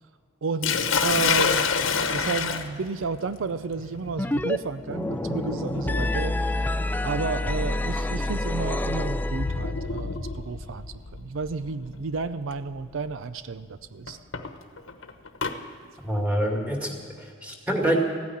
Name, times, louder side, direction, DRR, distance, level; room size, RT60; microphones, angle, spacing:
voice 1, 0.4-1.7 2.1-6.4 7.0-14.2, right 4 dB, 85° right, 13 dB, 0.5 m, -32 dB
Sink (filling or washing), 0.6-10.6 11.7-12.0 12.5-12.6 14.1-15.6, left 6 dB, 85° left, 1.1 m, -29 dB
sound 1, 4.2-4.6 4.8-9.8, left 1 dB, 10° left, 0.3 m, -28 dB
sound 2, 9.4-13.6 13.9-14.0, left 3 dB, 65° left, 0.7 m, -37 dB
voice 2, 16.0-17.9, equal, 10° right, 1 dB, 2.2 m, -26 dB
15.5 x 9.4 x 9.9 m, 2.2 s
head